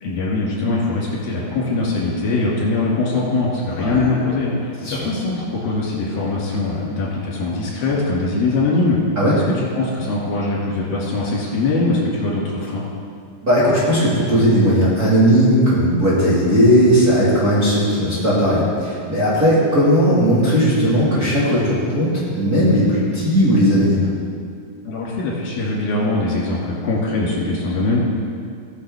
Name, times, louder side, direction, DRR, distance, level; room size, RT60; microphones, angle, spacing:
voice 1, 0.0-9.0 9.3-12.8 24.8-28.0, left 2 dB, 75° left, -5 dB, 4.2 m, -22 dB
voice 2, 3.7-4.1 4.8-5.1 9.2-9.3 13.4-24.1, equal, 30° right, -10 dB, 2.1 m, -16 dB
18.5 x 6.5 x 3.6 m, 2.2 s
omnidirectional pair, 4.3 m